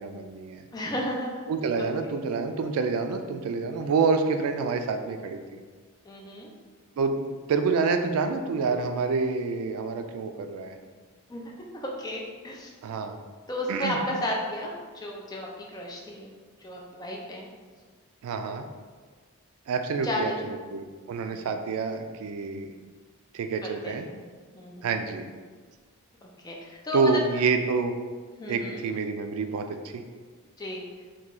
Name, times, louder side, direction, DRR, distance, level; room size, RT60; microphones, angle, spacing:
voice 1, 0.0-0.6 1.5-5.4 7.0-10.8 12.8-13.2 13.7-14.0 18.2-18.6 19.7-22.7 23.3-24.1 24.8-25.3 26.9-27.9 28.5-30.0, right 4 dB, 90° right, 7 dB, 0.3 m, -27 dB
voice 2, 0.7-1.4 1.8-1.9 6.0-6.5 11.3-11.4 11.7-12.7 13.5-16.3 16.6-17.5 20.0-20.5 21.3-21.5 23.6-23.9 24.5-24.9 26.4-27.2 28.4-28.8 30.6-30.9, left 1 dB, 20° left, -2 dB, 0.4 m, -33 dB
3.0 x 2.3 x 3.7 m, 1.5 s
head